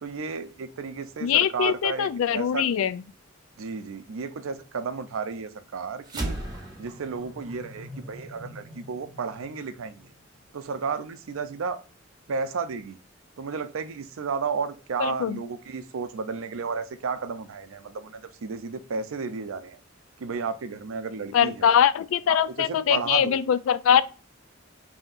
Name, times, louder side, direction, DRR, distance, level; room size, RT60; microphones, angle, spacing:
voice 1, 0.0-2.7 3.6-6.4 6.8-10.1 10.5-11.8 12.3-13.0 13.4-19.8 20.2-21.7 22.3-23.4, right 5 dB, 80° right, 0.5 m, -33 dB
voice 2, 1.2-3.0 15.0-15.4 21.3-24.0, left 9 dB, 80° left, 0.3 m, -22 dB
sound 1, 6.0-10.7, right 1 dB, 20° right, 0.9 m, -38 dB
5.2 x 2.8 x 2.5 m
head